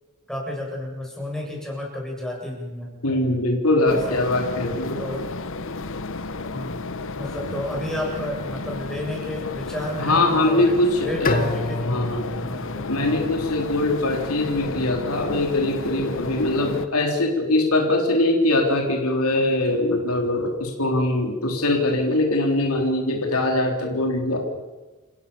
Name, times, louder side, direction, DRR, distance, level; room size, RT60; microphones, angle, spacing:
voice 1, 0.3-3.2 3.9-4.3 5.0-5.2 6.5-6.8 7.2-11.8 12.4-13.2, left 1 dB, 5° left, -2 dB, 7.9 m, -32 dB
voice 2, 3.0-5.1 10.0-11.4 11.8-12.3 12.9-24.4, left 2 dB, 85° left, 2 dB, 3.8 m, -22 dB
sound 1, 3.9-16.9, left 3 dB, 65° left, 1.3 m, -32 dB
Bowed string instrument, 11.2-14.3, left 2 dB, 40° left, 2.1 m, -29 dB
29.0 x 16.5 x 7.0 m, 1.2 s
head